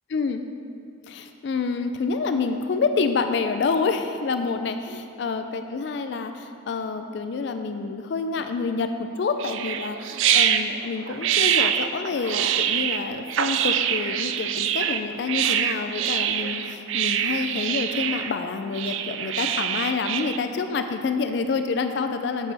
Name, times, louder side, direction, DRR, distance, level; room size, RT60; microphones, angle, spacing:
voice 1, 0.1-0.4 1.1-22.5, left 4 dB, 60° left, 7 dB, 0.3 m, -28 dB
sound 1, 9.4-20.4, right 9 dB, 75° right, 0.4 m, -25 dB
9.1 x 7.3 x 3.3 m, 2.5 s
head